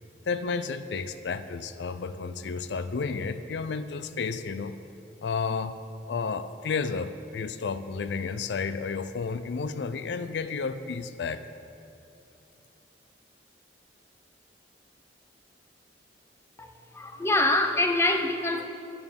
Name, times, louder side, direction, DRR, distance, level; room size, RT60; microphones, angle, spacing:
voice 1, 0.3-4.8 5.2-5.8 6.1-11.4, left 5 dB, 75° left, 12 dB, 0.4 m, -32 dB
voice 2, 17.0-18.7, left 2 dB, 15° left, 5 dB, 0.6 m, -24 dB
11.0 x 7.0 x 5.3 m, 2.8 s
head